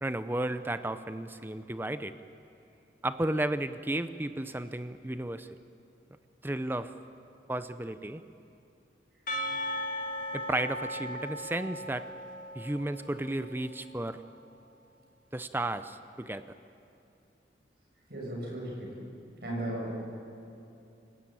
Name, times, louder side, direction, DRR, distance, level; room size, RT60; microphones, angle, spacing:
voice 1, 0.0-2.1 3.0-5.5 6.4-6.9 7.5-8.2 10.3-12.0 12.5-14.2 15.3-16.4, right 1 dB, 10° right, 11 dB, 0.5 m, -33 dB
Percussion / Church bell, 9.3-13.8, equal, 45° left, 2.1 m, -37 dB
voice 2, 18.1-19.0 19.4-19.9, right 1 dB, 65° right, -2 dB, 7.1 m, -35 dB
26.5 x 15.0 x 9.1 m, 2.6 s
head